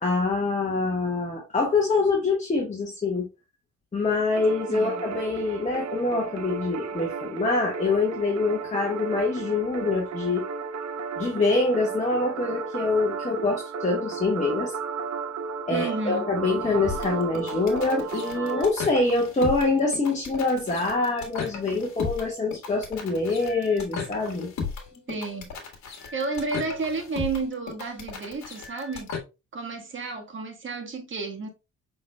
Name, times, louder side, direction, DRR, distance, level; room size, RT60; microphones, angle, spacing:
voice 1, 0.0-3.3 3.9-10.4 11.2-14.7 15.7-24.5, left 3 dB, 25° left, 1.4 m, -25 dB
sound 1, 4.3-18.7, right 5 dB, 60° right, 0.7 m, -34 dB
voice 2, 4.7-5.0 15.7-16.3 25.1-25.5 26.1-29.1 29.5-31.5, right 4 dB, 40° right, 1.4 m, -31 dB
sound 2, 16.8-29.2, left 5 dB, 65° left, 1.5 m, -36 dB
5.6 x 4.0 x 2.2 m
cardioid pair, 90°, 30 cm